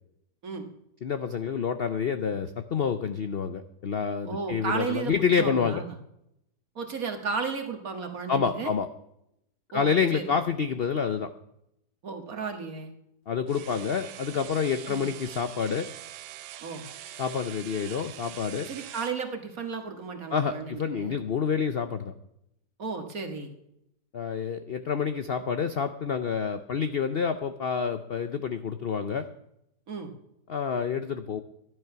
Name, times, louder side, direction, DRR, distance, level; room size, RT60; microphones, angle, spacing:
voice 1, 1.0-5.8 8.3-8.9 9.7-11.3 13.3-15.9 17.2-18.7 20.3-22.1 24.1-29.3 30.5-31.4, left 6 dB, 60° left, 9 dB, 0.6 m, -28 dB
voice 2, 4.2-6.0 6.8-8.7 9.7-10.4 12.0-12.9 14.9-15.1 16.6-16.8 18.6-21.2 22.8-23.5 29.9-30.1, right 5 dB, 55° right, 4 dB, 2.0 m, -34 dB
sound 1, 13.5-19.2, right 12 dB, 75° right, 1.2 m, -44 dB
12.5 x 11.0 x 5.8 m, 0.80 s
omnidirectional pair, 1.8 m